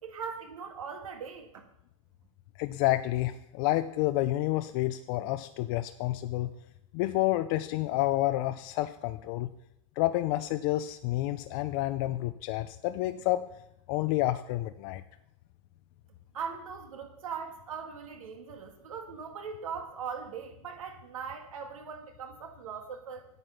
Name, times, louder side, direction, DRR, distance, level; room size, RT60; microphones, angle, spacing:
voice 1, 0.0-1.6 16.3-23.3, right 6 dB, 85° right, 5 dB, 1.9 m, -40 dB
voice 2, 2.6-6.5 6.9-9.5 10.0-13.5 13.9-15.0, left 16 dB, 45° left, 10 dB, 0.5 m, -29 dB
9.2 x 7.9 x 5.7 m, 0.76 s
hypercardioid pair, 135°, 17 cm